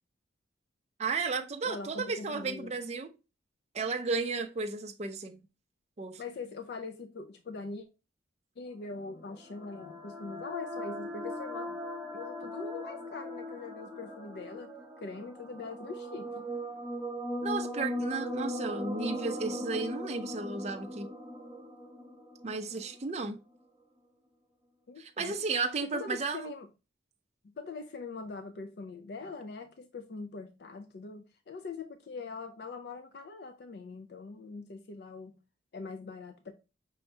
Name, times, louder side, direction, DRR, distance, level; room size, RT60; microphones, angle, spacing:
voice 1, 1.0-3.1 3.7-5.4 6.0-6.2 17.4-21.1 22.4-23.4 25.0-26.5, right 4 dB, 35° right, 0.4 m, -34 dB
voice 2, 1.6-2.7 6.2-7.9 8.6-11.8 12.1-16.4 24.9-25.4 25.8-26.7 27.6-35.4 35.7-36.5, left 4 dB, 55° left, 0.4 m, -42 dB
sound 1, 8.9-23.0, left 1 dB, 10° right, 0.9 m, -39 dB
5.5 x 2.7 x 3.2 m
head